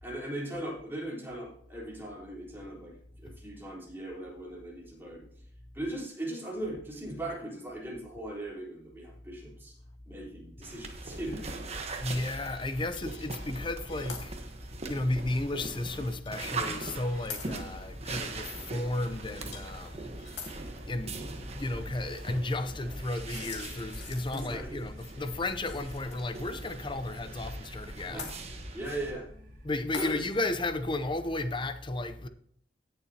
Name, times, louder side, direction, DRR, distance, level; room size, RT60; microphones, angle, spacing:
voice 1, 0.0-2.9 3.2-5.2 5.7-9.7 10.1-11.4 24.3-24.8 28.1-28.3 28.7-29.3 30.0-30.2, right 1 dB, 15° right, 3.8 m, -39 dB
sound 1, 10.6-29.1, right 2 dB, 35° right, 1.2 m, -41 dB
voice 2, 12.0-14.4 14.9-20.6 20.9-28.3 28.7-28.8 29.6-32.3, left 2 dB, 30° left, 0.7 m, -33 dB
sound 2, 12.8-13.5 13.9-14.3 14.8-14.9 16.2-16.6 17.1-17.5 19.4-19.8 20.1-20.6 23.1-26.1 26.4-26.5 28.2-28.4 29.9-30.1, left 5 dB, 85° left, 2.5 m, -44 dB
sound 3, 19.6-31.3, right 1 dB, 55° right, 1.9 m, -55 dB
17.5 x 7.0 x 2.9 m
head